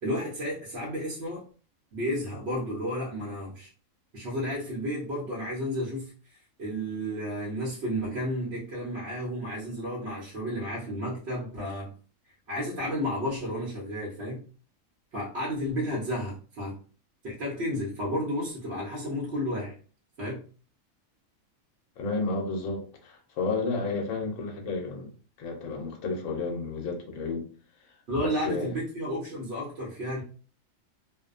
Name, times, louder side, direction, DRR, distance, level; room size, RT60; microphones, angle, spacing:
voice 1, 0.0-1.4 1.9-3.7 4.1-6.1 6.6-12.0 12.5-14.4 15.1-16.8 17.2-19.8 20.2-20.4 28.1-30.2, equal, 60° right, 0.9 m, -32 dB
voice 2, 22.0-25.1 25.4-27.5 27.8-28.7, left 3 dB, 75° left, 1.0 m, -32 dB
2.6 x 2.1 x 2.4 m
omnidirectional pair, 1.4 m